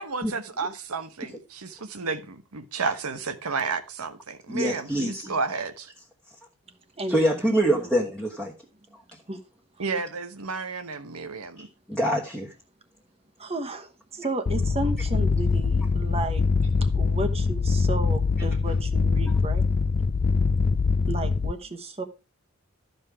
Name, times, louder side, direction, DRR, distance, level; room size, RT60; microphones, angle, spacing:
voice 1, 0.0-5.9 9.8-11.7, right 4 dB, 85° right, 1.1 m, -32 dB
voice 2, 4.5-5.3 7.1-8.5 11.9-12.5, right 1 dB, 5° left, 1.3 m, -24 dB
voice 3, 13.4-16.4 16.8-19.6 21.1-22.0, right 2 dB, 25° right, 1.1 m, -33 dB
sound 1, 14.5-21.5, left 4 dB, 40° left, 0.4 m, -23 dB
13.0 x 5.4 x 4.8 m
head